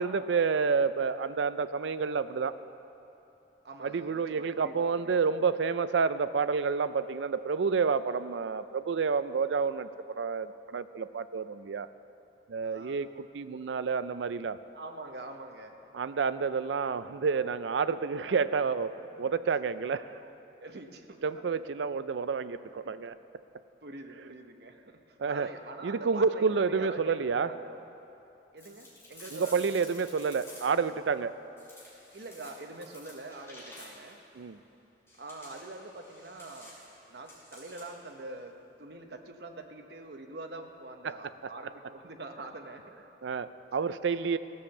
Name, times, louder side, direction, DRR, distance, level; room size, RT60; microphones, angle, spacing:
voice 1, 0.0-2.5 3.8-11.9 12.5-13.1 13.3-14.6 15.9-20.2 21.2-23.1 25.2-25.5 25.8-27.5 29.3-31.3 34.4-34.6 43.2-44.4, right 5 dB, 85° right, 14 dB, 0.4 m, -29 dB
voice 2, 3.6-5.3 12.6-13.0 14.7-15.8 17.0-17.1 18.2-18.5 19.0-19.1 20.6-21.2 23.8-27.9 28.5-29.7 32.1-34.2 35.2-36.8 37.1-42.8, right 2 dB, 65° right, 4 dB, 0.9 m, -45 dB
sound 1, 28.6-30.9 31.6-34.2 35.1-38.1, left 1 dB, 15° left, 2.6 m, -51 dB
15.5 x 7.2 x 6.9 m, 2.9 s
head